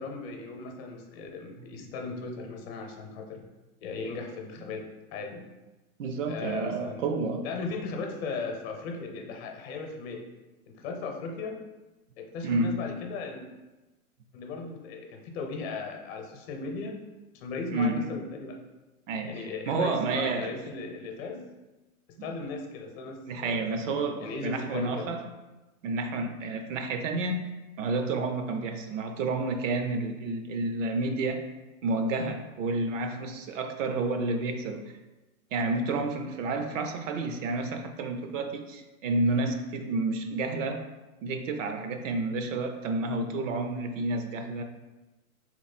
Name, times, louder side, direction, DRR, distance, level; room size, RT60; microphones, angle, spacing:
voice 1, 0.0-3.4 3.8-4.8 5.1-5.4 6.3-7.1 7.4-10.2 10.7-11.6 12.2-13.5 14.3-17.0 17.3-18.6 19.2-21.5 22.2-23.8 24.2-25.1, left 4 dB, 45° left, 3 dB, 0.8 m, -37 dB
voice 2, 6.0-7.4 12.4-12.8 17.7-18.1 19.1-20.5 22.2-22.4 23.3-25.2 25.8-27.5 27.8-31.4 31.8-34.8 35.5-40.8 41.2-44.6, right 3 dB, 60° right, 6 dB, 0.6 m, -30 dB
3.2 x 3.2 x 4.1 m, 1.1 s
hypercardioid pair, 130°, 44 cm